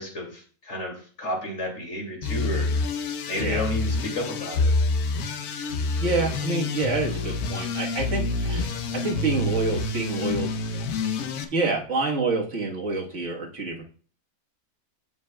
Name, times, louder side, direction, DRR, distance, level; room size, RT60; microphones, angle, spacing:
voice 1, 0.0-2.7 3.3-4.7, left 1 dB, 50° left, -1 dB, 2.6 m, -31 dB
sound 1, 2.2-11.4, left 3 dB, 80° left, 1.3 m, -27 dB
voice 2, 6.0-10.5 11.5-13.8, right 3 dB, 55° right, -1 dB, 1.7 m, -27 dB
15.0 x 5.1 x 2.2 m, 0.43 s
omnidirectional pair, 1.6 m